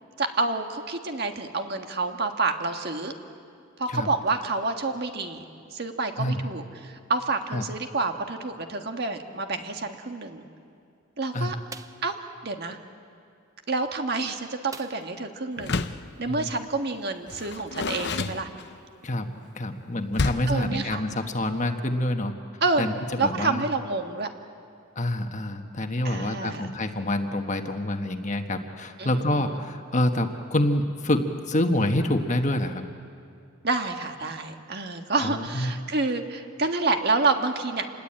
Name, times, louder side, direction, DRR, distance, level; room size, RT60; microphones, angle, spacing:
voice 1, 0.2-3.1 3.8-5.4 5.7-10.4 11.2-11.5 12.0-12.8 13.7-15.8 16.2-18.5 20.5-21.0 22.6-22.9 23.2-24.3 26.0-26.7 29.0-29.6 33.6-37.8, right 3 dB, 50° right, 5 dB, 1.6 m, -28 dB
voice 2, 6.2-6.5 7.5-7.6 11.3-11.5 16.3-16.5 19.0-19.3 19.5-22.3 22.8-23.6 24.9-32.8 35.2-35.7, left 1 dB, 35° left, 5 dB, 1.4 m, -27 dB
sound 1, 11.7-12.1 14.7-15.3 15.7-15.8 16.2-16.3, right 3 dB, 15° right, 0.7 m, -43 dB
Door, 15.6-16.1 17.3-19.0 20.1-20.6, left 3 dB, 55° left, 0.8 m, -29 dB
27.5 x 20.5 x 8.8 m, 2.3 s
head